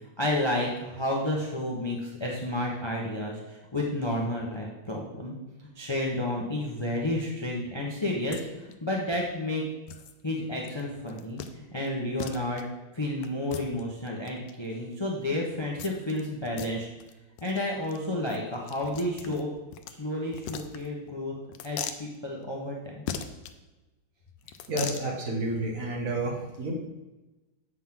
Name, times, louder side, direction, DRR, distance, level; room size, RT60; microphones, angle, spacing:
voice 1, 0.2-5.3 5.8-8.5 8.8-9.6 10.2-12.6 12.9-16.9 17.4-19.5 20.0-21.3 21.6-23.0, left 1 dB, 40° left, -2 dB, 0.3 m, -31 dB
sound 1, 8.3-8.4 8.7-8.8 9.1-9.2 9.9-10.1 10.6-10.8 11.1-11.5 11.8-11.9 12.2-12.6 13.2-14.5 15.8-16.2 16.5-16.7 17.0-17.1 17.4-17.6 17.8-18.0 18.3-19.9 20.3-21.1 21.5-22.0 23.1-23.5 24.4-25.0, left 8 dB, 70° left, 1.1 m, -38 dB
voice 2, 24.7-26.7, right 2 dB, 45° right, 0 dB, 1.4 m, -30 dB
8.2 x 3.8 x 5.9 m, 1.1 s
omnidirectional pair, 2.3 m